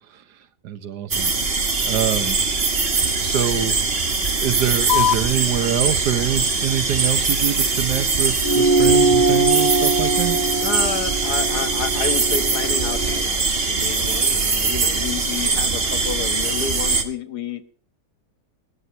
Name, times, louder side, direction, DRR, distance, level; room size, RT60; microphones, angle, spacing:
voice 1, 0.6-1.3 1.8-2.4 3.0-3.8 4.4-10.4, right 10 dB, 85° right, 11 dB, 1.6 m, -25 dB
sound 1, 1.1-17.0, right 4 dB, 40° right, 1.5 m, -22 dB
sound 2, 4.9-11.9, left 12 dB, 60° left, 1.2 m, -31 dB
sound 3, 8.4-13.2, right 3 dB, 15° left, 1.4 m, -21 dB
voice 2, 10.6-17.6, left 7 dB, 75° left, 10 dB, 1.7 m, -30 dB
20.0 x 9.6 x 4.2 m, 0.43 s
omnidirectional pair, 1.7 m